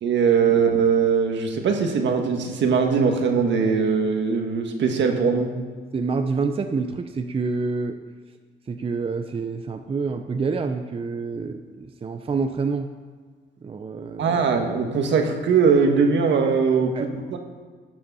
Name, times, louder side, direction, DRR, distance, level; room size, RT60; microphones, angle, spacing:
voice 1, 0.0-5.5 14.2-17.4, right 5 dB, 65° right, 4 dB, 1.6 m, -21 dB
voice 2, 5.9-8.0 8.7-12.9 13.6-14.7 16.9-17.1, right 4 dB, 30° right, 7 dB, 0.6 m, -27 dB
12.5 x 6.9 x 5.5 m, 1.5 s
cardioid pair, 90°, 20 cm